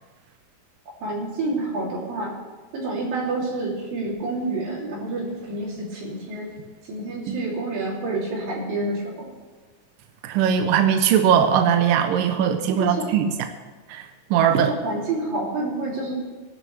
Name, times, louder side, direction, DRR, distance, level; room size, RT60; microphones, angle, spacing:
voice 1, 1.0-2.3 2.7-6.5 6.8-9.1 12.8-13.1 14.6-16.1, right 2 dB, 60° right, -4 dB, 4.6 m, -28 dB
voice 2, 10.2-13.3 13.9-14.0 14.3-14.7, right 8 dB, 80° right, 7 dB, 2.0 m, -19 dB
20.0 x 12.0 x 3.3 m, 1.3 s
omnidirectional pair, 4.6 m